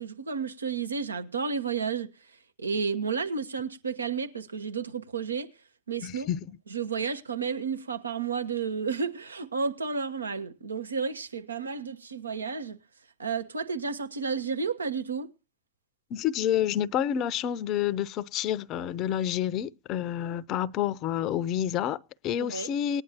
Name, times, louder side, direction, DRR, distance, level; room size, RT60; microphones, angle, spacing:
voice 1, 0.0-2.1 2.6-5.5 5.9-6.3 6.7-12.8 13.2-15.3 22.4-22.7, right 5 dB, 75° right, 1.0 m, -32 dB
voice 2, 6.0-6.6 16.1-23.0, left 10 dB, 35° left, 0.6 m, -29 dB
19.5 x 10.0 x 2.8 m
figure-of-eight pair, 90°, 0 cm